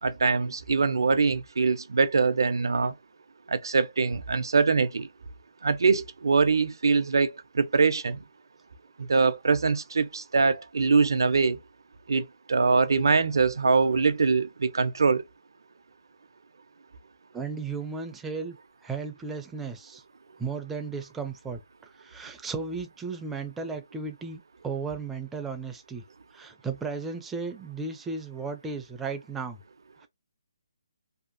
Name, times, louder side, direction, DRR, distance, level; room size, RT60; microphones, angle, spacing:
voice 1, 0.0-2.9 3.5-5.1 5.6-8.2 9.0-11.6 12.1-15.2, right 4 dB, 75° right, 0.5 m, -23 dB
voice 2, 17.3-18.6 18.8-20.0 20.4-21.6 22.0-26.0 26.3-29.6, right 4 dB, 5° right, 0.4 m, -35 dB
2.7 x 2.4 x 2.4 m
hypercardioid pair, 160°, 2 cm